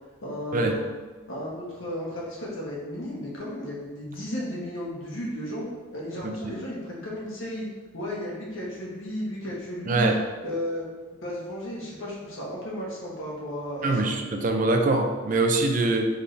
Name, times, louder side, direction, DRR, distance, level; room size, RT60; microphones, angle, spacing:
voice 1, 0.2-0.8 1.3-5.7 5.9-7.7 7.9-10.1 10.4-10.8 11.2-14.1, left 1 dB, 85° left, -5 dB, 1.2 m, -34 dB
voice 2, 9.9-10.2 13.8-16.1, right 2 dB, 40° right, 3 dB, 0.4 m, -23 dB
3.5 x 3.3 x 4.0 m, 1.3 s
head